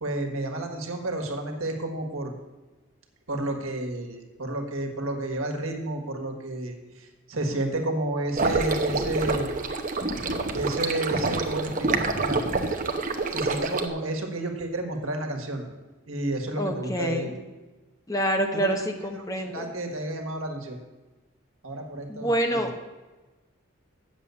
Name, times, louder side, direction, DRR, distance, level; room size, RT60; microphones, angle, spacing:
voice 1, 0.0-2.3 3.3-9.5 10.5-12.4 13.3-15.7 16.1-17.3 18.5-18.9 19.1-19.2 19.5-20.8 21.6-22.7, right 2 dB, 80° right, 3 dB, 1.6 m, -31 dB
sound 1, 8.4-13.9, right 3 dB, 40° right, 0.8 m, -27 dB
voice 2, 16.6-17.4 18.1-19.7 22.1-22.7, right 1 dB, 15° left, 4 dB, 0.9 m, -27 dB
8.3 x 7.4 x 6.9 m, 1.2 s
head